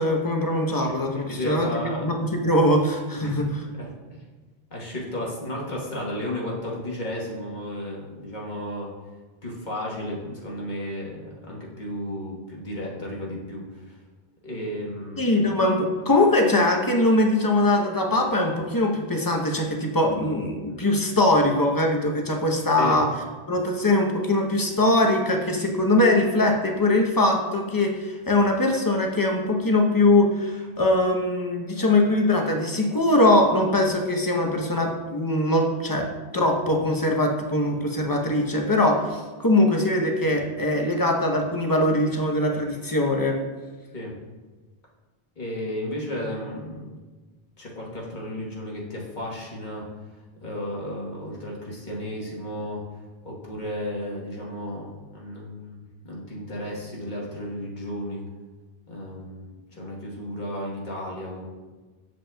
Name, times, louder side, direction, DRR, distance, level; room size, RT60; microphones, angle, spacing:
voice 1, 0.0-3.5 15.2-23.1 23.5-36.1 36.3-43.4, left 1 dB, 25° left, 1 dB, 0.7 m, -22 dB
voice 2, 1.1-2.1 3.1-3.3 3.8-3.9 4.7-8.9 9.4-13.9 14.4-15.4 22.8-23.0 43.9-44.1 45.4-46.9 47.6-49.8 50.4-52.8 53.2-58.2 58.9-59.5 59.7-61.5, left 1 dB, 50° left, -3 dB, 1.4 m, -33 dB
7.6 x 7.2 x 2.2 m, 1.3 s
omnidirectional pair, 1.0 m